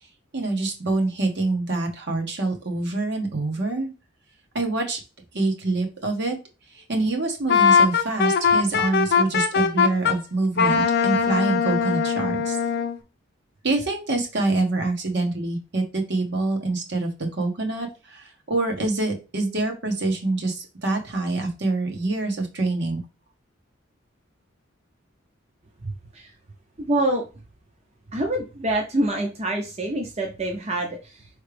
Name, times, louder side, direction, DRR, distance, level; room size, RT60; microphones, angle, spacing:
voice 1, 0.3-3.9 4.5-5.0 5.3-6.4 6.7-12.6 13.6-23.0, right 2 dB, 60° right, 3 dB, 1.2 m, -26 dB
Wind instrument woodwind instrument, 7.5-10.2 10.6-13.0, left 6 dB, 55° left, 0.6 m, -20 dB
voice 2, 25.8-26.3 26.8-27.3 28.1-31.3, right 1 dB, 35° right, 1 dB, 0.7 m, -26 dB
4.8 x 3.2 x 3.3 m, 0.30 s
head